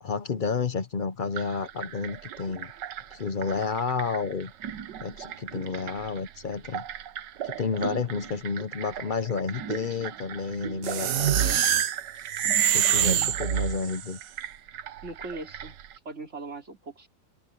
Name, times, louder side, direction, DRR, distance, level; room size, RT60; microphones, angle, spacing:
voice 1, 0.0-2.7 3.1-4.5 5.0-6.8 7.4-11.6 12.6-14.2, left 5 dB, 50° left, 0.6 m, -31 dB
sound 1, 1.4-16.0, right 10 dB, 85° right, 1.6 m, -40 dB
sound 2, 10.8-14.1, right 10 dB, 60° right, 1.1 m, -24 dB
voice 2, 15.0-15.8 16.1-17.1, right 3 dB, 40° right, 3.6 m, -39 dB
omnidirectional pair, 1.8 m